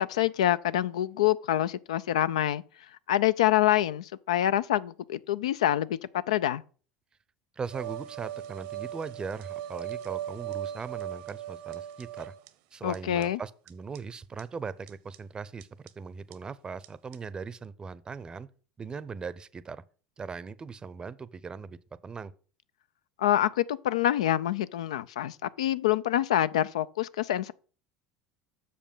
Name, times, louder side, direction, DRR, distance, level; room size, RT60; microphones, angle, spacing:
voice 1, 0.0-2.6 3.1-6.0 6.3-6.6 12.8-13.4 23.2-27.5, left 12 dB, 80° left, 0.4 m, -26 dB
voice 2, 7.5-12.3 12.7-18.5 18.8-19.8 20.2-22.3, right 5 dB, 25° right, 0.6 m, -39 dB
sound 1, 7.7-12.5 12.9-13.0 13.2-13.3 13.7-13.8 14.0-14.1 14.4-14.5 14.9-15.2 15.6-15.9 16.3-16.4 16.8-16.9 17.1-17.2, right 11 dB, 70° right, 0.8 m, -38 dB
6.6 x 5.2 x 5.5 m
hypercardioid pair, 80°, 3 cm